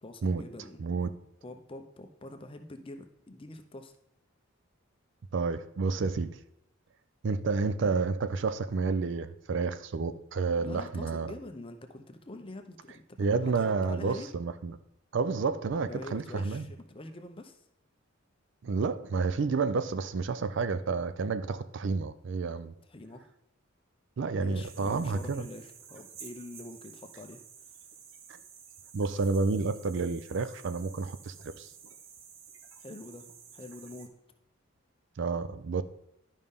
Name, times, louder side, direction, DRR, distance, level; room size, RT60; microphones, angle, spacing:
voice 1, 0.0-1.2 1.4-3.9 10.6-13.2 13.4-14.3 15.8-17.6 22.9-23.2 24.4-27.4 32.8-34.2, left 2 dB, 25° left, 0.6 m, -45 dB
voice 2, 0.8-1.1 5.3-6.4 7.2-11.3 13.2-14.8 15.1-16.7 18.6-22.7 24.2-25.5 28.9-31.7 35.2-35.8, right 4 dB, 60° right, 0.4 m, -30 dB
sound 1, 24.6-34.1, right 7 dB, 75° right, 0.8 m, -51 dB
11.0 x 5.4 x 3.6 m
head